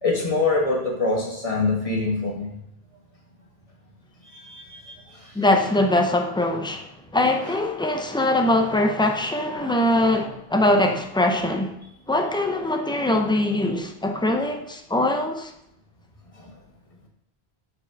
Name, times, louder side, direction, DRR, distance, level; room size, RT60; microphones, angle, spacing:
voice 1, 0.0-2.5 4.3-5.3 9.5-9.7 16.3-16.5, left 3 dB, 35° left, 1.5 m, -25 dB
voice 2, 5.3-11.8 12.1-15.5, left 1 dB, 10° left, 0.3 m, -22 dB
5.8 x 4.4 x 4.5 m
omnidirectional pair, 1.1 m